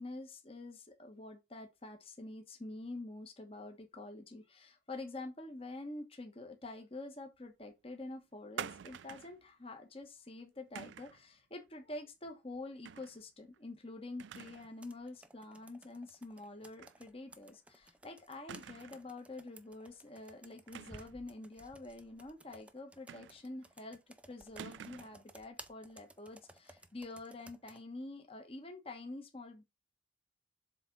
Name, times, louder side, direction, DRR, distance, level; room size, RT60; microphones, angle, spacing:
voice 1, 0.0-29.6, left 2 dB, 30° left, 1.2 m, -47 dB
sound 1, 8.6-9.4 10.8-11.2 12.8-13.2 13.5-13.6 14.2-14.7 15.1-15.2 16.8-17.0 17.3-17.4 18.5-19.1 20.7-21.2 23.1-23.6 24.6-25.2, right 8 dB, 75° right, 0.4 m, -47 dB
Computer keyboard, 14.3-27.8, right 2 dB, 5° right, 0.5 m, -58 dB
7.5 x 3.6 x 5.3 m
head